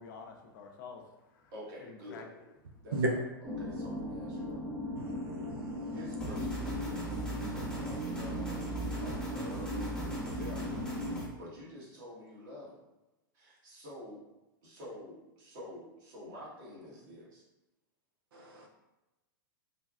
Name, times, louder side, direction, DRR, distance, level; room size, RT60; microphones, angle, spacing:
voice 1, 0.0-1.5 1.8-2.8, left 5 dB, 60° left, 2 dB, 0.6 m, -50 dB
voice 2, 1.5-2.3 2.8-2.9 3.4-4.6 5.9-7.0 7.8-8.7 9.0-10.7 11.4-12.8 13.3-14.2 14.6-17.4, left 1 dB, 60° right, -5 dB, 1.4 m, -48 dB
sound 1, 3.4-11.3, left 1 dB, 15° right, 0.5 m, -38 dB
voice 3, 4.9-6.1 18.3-18.7, right 2 dB, 80° right, 1 dB, 0.5 m, -36 dB
sound 2, 6.2-11.3, right 2 dB, 5° left, 0.8 m, -40 dB
3.3 x 2.2 x 2.4 m, 1.0 s
hypercardioid pair, 115°, 12 cm